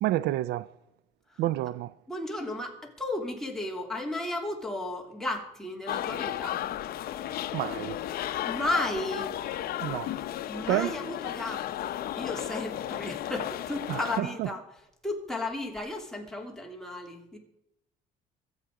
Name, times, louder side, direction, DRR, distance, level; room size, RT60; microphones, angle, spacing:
voice 1, 0.0-0.7 1.4-1.9 7.5-8.0 9.8-10.1 10.7-10.9 13.9-14.3, right 14 dB, 80° right, 0.5 m, -28 dB
voice 2, 2.1-6.7 8.4-9.3 10.5-17.4, left 2 dB, 5° left, 2.9 m, -34 dB
sound 1, 5.9-14.2, left 12 dB, 65° left, 0.7 m, -34 dB
24.5 x 8.1 x 4.8 m
cardioid pair, 110°, 17 cm